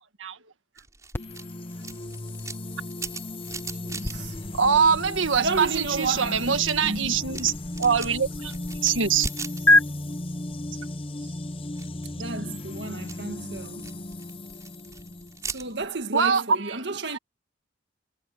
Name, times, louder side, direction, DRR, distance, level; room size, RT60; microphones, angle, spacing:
sound 1, 0.8-5.4 5.7-10.2 10.4-11.0 11.5-16.0, right 5 dB, 15° right, 6.0 m, -41 dB
sound 2, 1.1-9.3 9.7-9.8, left 2 dB, 10° left, 0.3 m, -29 dB
sound 3, 1.2-15.9, left 1 dB, 30° left, 0.8 m, -36 dB
voice 1, 3.5-4.4 5.4-6.6 6.8-7.4 11.2-11.4 12.2-13.9 15.5-17.2, right 3 dB, 60° right, 2.0 m, -32 dB
voice 2, 4.5-7.5 7.8-9.3 16.1-16.8 17.1-17.2, right 6 dB, 90° right, 1.6 m, -23 dB
head